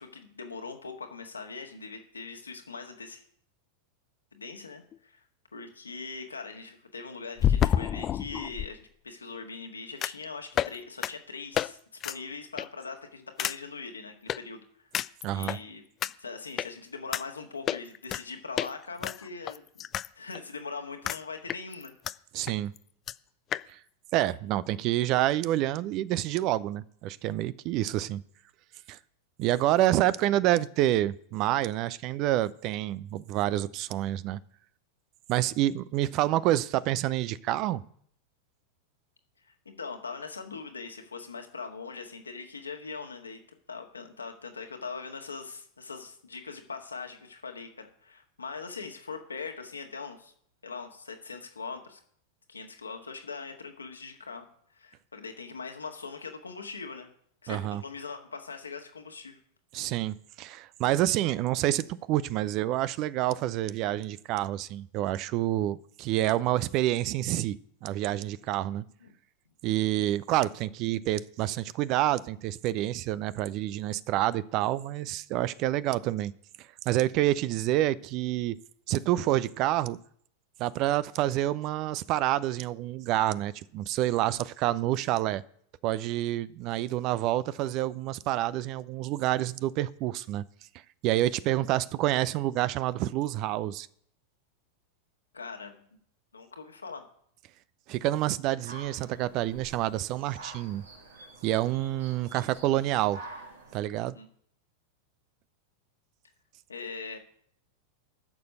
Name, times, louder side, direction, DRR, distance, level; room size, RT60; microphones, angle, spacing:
voice 1, 0.0-3.2 4.3-5.2 5.5-8.8 9.0-11.8 12.0-14.6 15.0-15.8 16.2-19.8 20.1-21.9 39.4-43.4 43.7-50.3 50.6-52.0 52.5-54.5 54.7-57.1 57.4-59.4 69.0-69.1 91.6-91.8 95.3-95.8 96.3-97.1 104.1-104.3 106.7-107.2, left 4 dB, 75° left, 1.7 m, -41 dB
sound 1, 4.9-5.0 7.4-8.7 10.0-10.2 10.6-10.8 11.0-11.1 11.6-11.7 12.0-12.2 12.6-12.8 13.4-13.6 14.3-14.4 14.9-15.6 16.0-16.1 16.6-16.7 17.1-17.2 17.7-18.2 18.6-18.7 19.0-20.1 20.4-20.5 21.1-21.2 21.5-22.1 22.5-22.6 22.8-22.9 23.1-23.2 23.5-23.6, left 10 dB, 30° left, 0.4 m, -29 dB
voice 2, 15.2-15.6 22.3-22.7 23.7-23.8 24.1-28.2 28.9-29.0 29.4-34.4 35.3-37.8 57.5-57.8 59.7-67.6 67.8-68.8 69.6-76.3 76.9-78.6 78.9-80.0 80.6-85.4 85.8-90.4 91.0-93.9 97.9-100.8 101.4-103.2 103.7-104.2, right 14 dB, 40° right, 0.5 m, -28 dB
sound 2, 98.7-103.8, right 3 dB, 70° right, 2.3 m, -47 dB
12.0 x 6.8 x 7.9 m
figure-of-eight pair, 90°, 0 cm